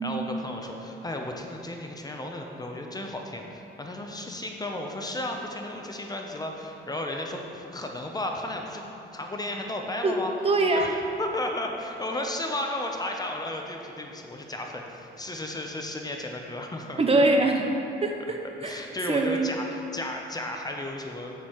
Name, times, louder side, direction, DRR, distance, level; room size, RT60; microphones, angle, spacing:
voice 1, 0.0-8.9 9.1-10.3 10.7-17.0 18.6-21.3, left 1 dB, 20° left, 2 dB, 0.6 m, -34 dB
voice 2, 10.0-10.9 17.0-17.7 18.0-18.8 19.1-19.5, right 2 dB, 30° right, 3 dB, 0.6 m, -24 dB
7.1 x 6.4 x 3.0 m, 2.9 s
cardioid pair, 90°, 20 cm